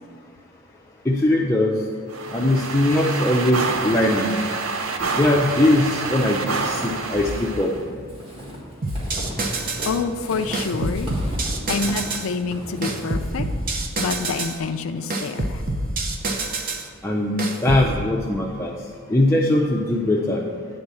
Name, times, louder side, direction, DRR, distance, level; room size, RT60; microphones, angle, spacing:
voice 1, 1.0-1.7 2.3-4.3 5.1-7.7 9.4-9.5 17.0-17.3 17.6-18.8 19.1-20.4, left 1 dB, 15° left, -3 dB, 0.5 m, -20 dB
sound 1, 2.1-7.8, right 4 dB, 80° right, 0.7 m, -27 dB
Walk footsteps / Squeak, 5.0-14.6, equal, 25° right, 1.5 m, -38 dB
sound 2, 8.8-10.0 10.5-12.3 12.8-14.6 15.1-16.9 17.4-17.9, right 2 dB, 45° right, 0.8 m, -26 dB
voice 2, 9.9-11.2 11.7-15.6, left 4 dB, 75° left, 7 dB, 0.4 m, -27 dB
9.6 x 3.6 x 7.0 m, 2.1 s
head